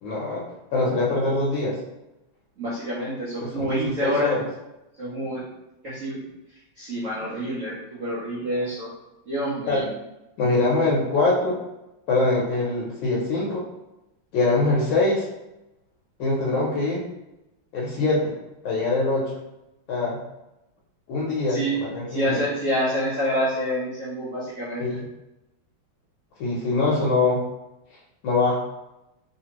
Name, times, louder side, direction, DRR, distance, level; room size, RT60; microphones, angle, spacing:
voice 1, 0.0-0.4 0.7-1.8 3.4-4.5 9.7-9.9 10.4-11.6 12.1-13.6 14.3-15.3 16.2-17.0 17.7-18.3 18.6-19.3 19.9-20.2 21.1-22.4 24.8-25.1 26.4-27.4 28.2-28.6, left 2 dB, 70° left, -4 dB, 1.3 m, -23 dB
voice 2, 2.6-4.4 5.0-5.5 5.8-6.2 6.8-8.9 9.3-9.9 21.5-21.8 22.1-24.8, equal, 70° right, -8 dB, 0.7 m, -27 dB
3.3 x 2.7 x 2.9 m, 0.93 s
omnidirectional pair, 2.4 m